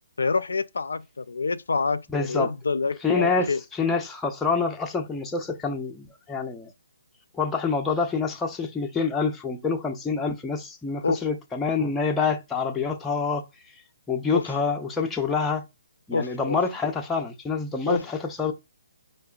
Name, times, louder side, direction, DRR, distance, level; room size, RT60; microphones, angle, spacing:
voice 1, 0.2-3.6 11.0-11.2 14.3-14.4 16.1-16.6 17.9-18.0, left 4 dB, 80° left, 0.3 m, -27 dB
voice 2, 2.1-2.5 3.0-6.7 7.3-13.4 14.1-15.6 16.1-18.5, left 4 dB, 10° left, 0.4 m, -27 dB
4.8 x 2.2 x 2.3 m
hypercardioid pair, 150°, 0 cm